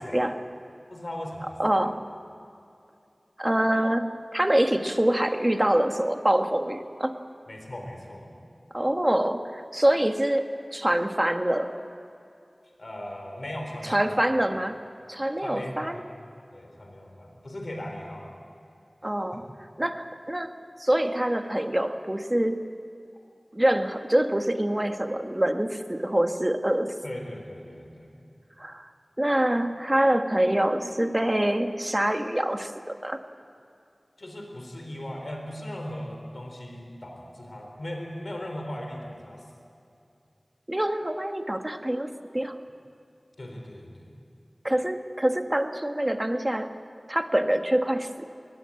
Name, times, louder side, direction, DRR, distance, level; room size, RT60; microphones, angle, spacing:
voice 1, 0.9-1.5 7.5-8.3 12.8-14.2 15.4-16.0 16.5-18.3 19.3-19.4 27.0-28.2 34.2-39.4 43.4-44.1, left 1 dB, 65° left, 2 dB, 4.0 m, -38 dB
voice 2, 1.6-2.1 3.4-7.1 8.7-11.8 13.8-14.8 15.1-16.0 19.0-19.5 19.8-22.6 23.5-26.9 28.6-28.9 29.2-33.2 40.7-42.5 44.6-46.7 47.1-48.3, right 1 dB, 25° right, 6 dB, 1.5 m, -25 dB
21.0 x 19.0 x 8.6 m, 2.6 s
wide cardioid pair, 40°, 0 cm